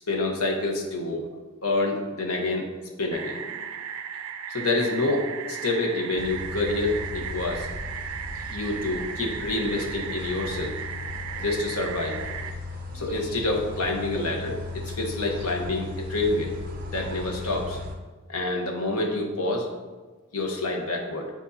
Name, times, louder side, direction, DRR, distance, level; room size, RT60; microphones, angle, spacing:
voice 1, 0.1-1.3 1.6-2.7 3.0-3.5 4.5-7.7 8.5-10.7 11.4-12.3 12.9-16.5 16.9-17.8 18.3-19.7 20.3-21.3, left 2 dB, 80° left, 1 dB, 1.1 m, -27 dB
sound 1, 3.1-12.5, right 7 dB, 70° right, 0.5 m, -36 dB
sound 2, 6.2-17.9, left 2 dB, 40° right, 0.7 m, -37 dB
9.5 x 4.5 x 2.8 m, 1.3 s
head